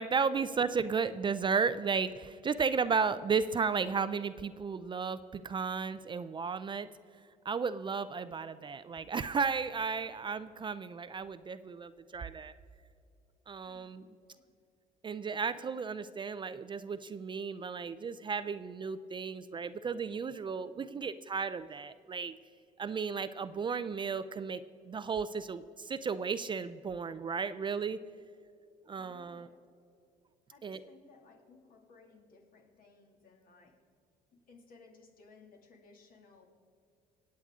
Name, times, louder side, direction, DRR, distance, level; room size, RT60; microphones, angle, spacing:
voice 1, 0.0-6.9 7.5-12.5 13.5-14.0 15.0-22.4 22.8-24.6 24.9-28.0 28.9-29.5 30.6-30.8, right 5 dB, 30° right, 13 dB, 0.4 m, -34 dB
voice 2, 13.7-14.5 29.0-29.7 30.5-33.8 34.3-36.5, left 4 dB, 55° left, 2 dB, 2.3 m, -60 dB
25.5 x 8.5 x 3.6 m, 2.6 s
cardioid pair, 110°, 17 cm